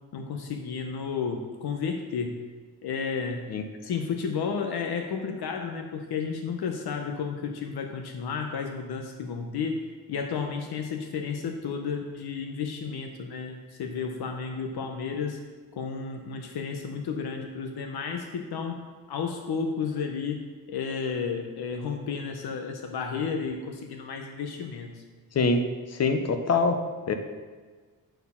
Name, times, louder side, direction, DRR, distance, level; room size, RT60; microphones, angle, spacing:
voice 1, 0.1-2.4 2.8-3.5 3.8-9.8 10.1-15.4 15.7-25.0, left 5 dB, 80° left, 4 dB, 0.8 m, -32 dB
voice 2, 26.0-26.7 27.1-27.2, left 3 dB, 45° left, 7 dB, 0.7 m, -23 dB
9.1 x 4.3 x 5.6 m, 1.5 s
wide cardioid pair, 170°, 38 cm